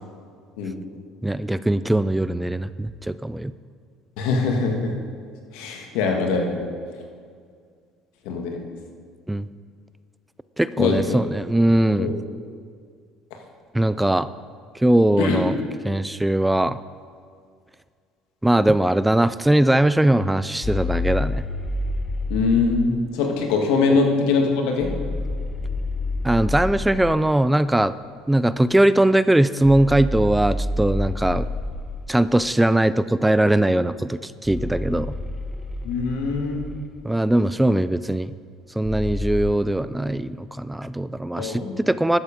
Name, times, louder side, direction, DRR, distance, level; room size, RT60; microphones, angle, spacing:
voice 1, 1.2-3.5 9.3-9.5 10.6-12.1 13.7-14.3 14.7-15.6 15.8-16.8 18.4-21.4 23.9-24.0 26.2-27.9 28.3-31.5 32.1-35.1 37.0-38.3 38.8-42.2, right 1 dB, 5° right, 15 dB, 0.3 m, -20 dB
voice 2, 4.2-4.9 5.5-6.6 8.2-8.7 10.8-11.2 12.0-12.1 15.2-15.4 22.3-24.9 35.8-36.7 41.4-41.7, left 4 dB, 80° left, 2 dB, 1.6 m, -22 dB
sound 1, 20.6-22.9 24.8-27.3 29.6-32.2 34.4-37.0 38.8-39.5, left 2 dB, 25° left, 0.8 m, -28 dB
12.5 x 7.2 x 5.2 m, 2.1 s
supercardioid pair, 90°, 0 cm